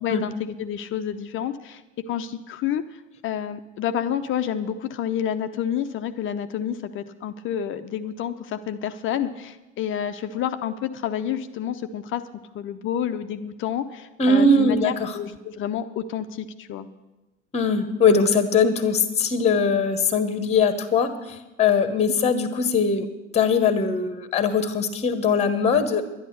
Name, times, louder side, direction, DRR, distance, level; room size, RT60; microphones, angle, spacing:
voice 1, 0.0-12.2 12.5-16.9, left 9 dB, 30° left, 10 dB, 0.7 m, -29 dB
voice 2, 14.2-15.2 17.5-23.1 23.3-26.0, left 4 dB, 15° left, 11 dB, 1.1 m, -21 dB
11.0 x 11.0 x 6.7 m, 1.1 s
figure-of-eight pair, 75°, 39 cm